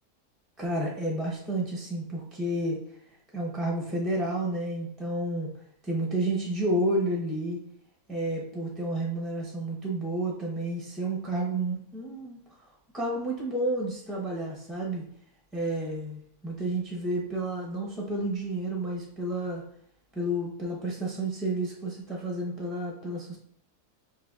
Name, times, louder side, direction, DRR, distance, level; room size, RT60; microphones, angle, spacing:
voice 1, 0.6-2.8 3.3-5.5 5.8-7.6 8.1-12.7 12.9-15.0 15.5-19.6 20.1-23.4, right 1 dB, ahead, -3 dB, 0.5 m, -31 dB
6.5 x 3.1 x 2.4 m, 0.66 s
omnidirectional pair, 1.6 m